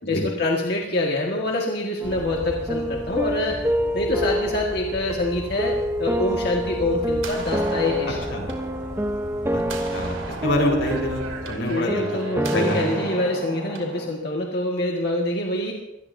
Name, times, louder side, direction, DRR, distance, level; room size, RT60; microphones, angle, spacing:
voice 1, 0.1-3.6 3.9-8.2 11.7-15.7, left 2 dB, 55° left, -1 dB, 1.7 m, -25 dB
sound 1, 2.0-14.1, equal, 15° right, 0.9 m, -28 dB
Bird vocalization bird call bird song, 2.0-11.5, equal, 40° right, 2.7 m, -37 dB
sound 2, 6.3-14.1, right 3 dB, 90° right, 2.9 m, -38 dB
voice 2, 10.4-12.1 12.5-13.0, left 1 dB, 85° left, 1 dB, 4.5 m, -25 dB
25.5 x 18.5 x 2.7 m, 0.93 s
head